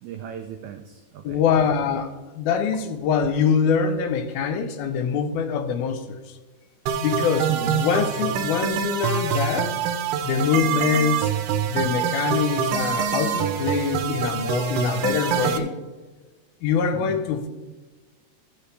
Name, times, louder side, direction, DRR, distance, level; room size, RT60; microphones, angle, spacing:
voice 1, 0.0-1.4 7.5-7.7 16.9-17.2, right 10 dB, 90° right, 1.6 m, -36 dB
voice 2, 1.2-6.4 7.0-9.7 10.2-11.3 11.7-15.7 16.6-17.5, left 6 dB, 90° left, 2.7 m, -24 dB
sound 1, 6.9-15.6, right 7 dB, 70° right, 2.3 m, -25 dB
15.0 x 7.9 x 3.3 m
omnidirectional pair, 4.1 m